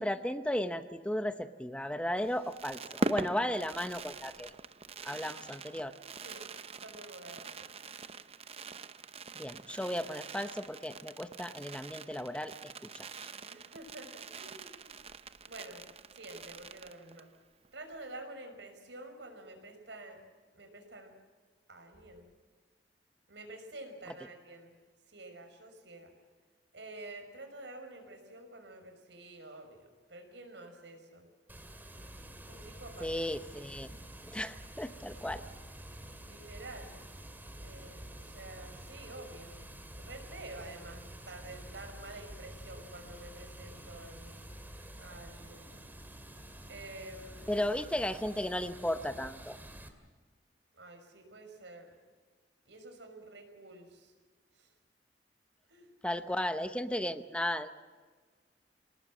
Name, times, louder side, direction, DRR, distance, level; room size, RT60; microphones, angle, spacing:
voice 1, 0.0-4.5 5.0-5.9 9.4-12.5 12.9-13.3 33.0-34.0 34.3-35.4 47.5-49.6 56.0-57.7, left 1 dB, 5° left, 10 dB, 0.8 m, -35 dB
Fireworks, 2.2-17.4 17.6-17.7 17.9-18.2, right 3 dB, 35° right, 0.8 m, -43 dB
voice 2, 6.8-7.7 13.4-15.1 15.4-15.9 16.1-17.3 17.7-20.2 20.5-21.1 21.7-22.3 23.3-24.7 25.1-26.1 26.7-31.3 32.4-33.3 36.2-37.0 37.6-39.7 40.0-44.4 45.0-45.8 46.7-47.6 50.7-52.0 52.7-54.1 54.5-54.7 55.7-55.9, right 2 dB, 90° right, 5 dB, 5.8 m, -49 dB
Water, 31.5-49.9, right 1 dB, 10° right, 2.3 m, -49 dB
27.0 x 19.0 x 7.5 m, 1.5 s
head